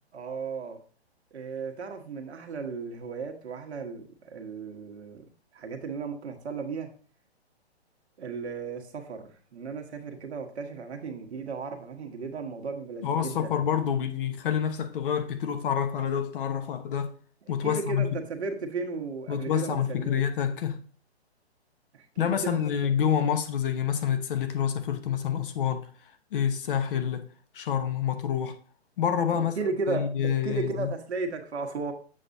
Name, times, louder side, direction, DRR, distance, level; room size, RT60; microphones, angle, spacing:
voice 1, 0.1-0.8 1.3-5.2 5.5-6.9 8.2-13.6 17.6-20.2 21.9-22.9 29.3-31.9, right 4 dB, 75° right, 1.3 m, -35 dB
voice 2, 13.0-17.1 17.5-18.0 19.3-20.8 22.2-25.9 26.3-27.3 27.5-28.6 29.0-29.5 29.9-30.9, left 8 dB, 50° left, 1.0 m, -27 dB
7.6 x 5.9 x 2.7 m
hypercardioid pair, 135°, 33 cm